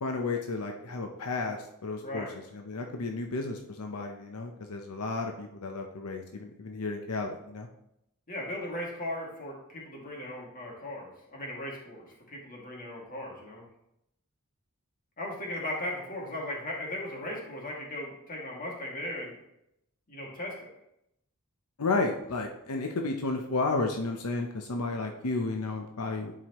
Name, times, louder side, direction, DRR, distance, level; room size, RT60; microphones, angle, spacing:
voice 1, 0.0-7.7 21.8-26.3, left 3 dB, 90° left, 3 dB, 0.8 m, -32 dB
voice 2, 2.0-2.3 8.3-13.6 15.2-19.4 20.1-20.7, left 1 dB, 40° left, -2 dB, 2.2 m, -37 dB
11.0 x 4.8 x 3.0 m, 0.81 s
head